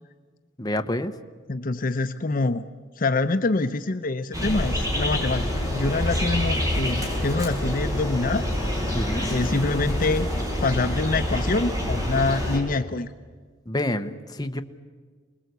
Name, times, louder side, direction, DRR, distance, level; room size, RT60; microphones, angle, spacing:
voice 1, 0.6-1.1 8.9-9.3 13.7-14.6, left 1 dB, 20° left, 6 dB, 1.1 m, -28 dB
voice 2, 1.5-2.6 3.0-8.5 9.3-10.3 10.6-13.1, left 3 dB, 45° left, 9 dB, 0.8 m, -25 dB
sound 1, 4.3-12.6, left 1 dB, 20° right, 6.2 m, -26 dB
28.5 x 21.0 x 8.2 m, 1.5 s
head